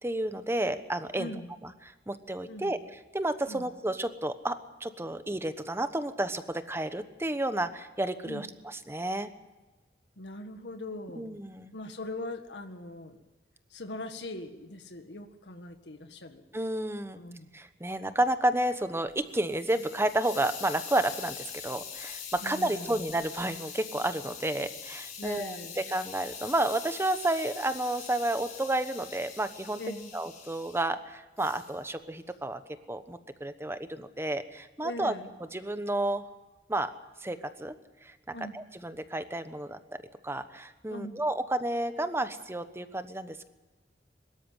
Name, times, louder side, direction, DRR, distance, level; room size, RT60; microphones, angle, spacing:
voice 1, 0.0-1.3 2.1-2.8 3.1-9.3 11.2-11.7 16.5-17.2 17.5-29.8 30.1-32.6 32.9-35.1 35.5-36.2 36.7-36.9 37.2-37.7 38.0-38.1 38.5-39.8 40.2-43.5, right 1 dB, 15° right, 10 dB, 1.1 m, -31 dB
voice 2, 1.2-1.5 2.5-2.8 3.5-3.7 8.2-8.5 10.2-11.4 11.7-13.2 13.7-16.4 17.1-17.5 22.4-23.1 25.2-25.9 29.8-30.1 34.8-35.3 38.3-38.6 40.9-41.2, left 1 dB, 75° left, 7 dB, 1.7 m, -41 dB
Hiss, 19.1-30.8 31.4-31.8, left 7 dB, 55° left, 4.7 m, -43 dB
23.0 x 13.0 x 9.2 m, 1.2 s
head